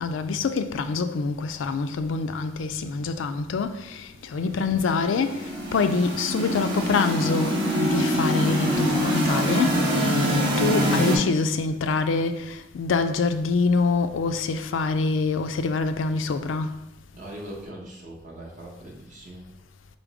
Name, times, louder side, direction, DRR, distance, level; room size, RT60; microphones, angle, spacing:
voice 1, 0.0-5.5 5.7-16.7, left 4 dB, 80° left, 0.4 m, -25 dB
sound 1, 4.7-11.2, equal, 25° right, 1.2 m, -25 dB
voice 2, 17.1-19.5, right 1 dB, 40° right, 0.9 m, -40 dB
5.0 x 2.0 x 4.7 m
head